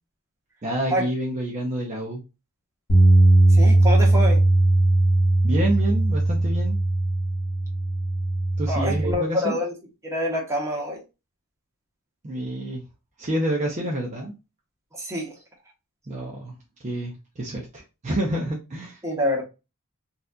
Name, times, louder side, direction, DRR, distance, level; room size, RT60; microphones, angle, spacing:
voice 1, 0.6-2.2 5.4-6.8 8.6-9.6 12.2-12.8 13.2-14.3 16.1-19.0, right 1 dB, 30° right, 0.7 m, -28 dB
Bass guitar, 2.9-9.1, right 2 dB, 80° left, 1.2 m, -19 dB
voice 2, 3.5-4.4 8.7-9.7 10.0-11.0 14.9-15.3 19.0-19.4, left 1 dB, 15° right, 1.0 m, -26 dB
4.0 x 2.5 x 2.3 m
head